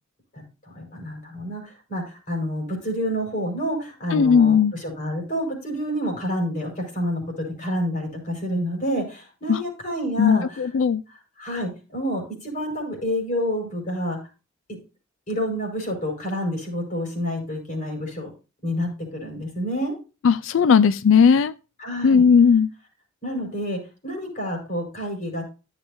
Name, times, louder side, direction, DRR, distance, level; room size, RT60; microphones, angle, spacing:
voice 1, 0.3-10.6 11.1-14.2 14.7-14.8 15.3-18.3 18.6-19.9 21.8-22.2 23.2-25.4, equal, 40° left, 5.0 m, -28 dB
voice 2, 4.1-4.7 9.5-9.6 10.2-11.0 20.2-21.5 22.0-22.7, left 6 dB, 65° left, 0.4 m, -17 dB
14.0 x 7.2 x 2.6 m
head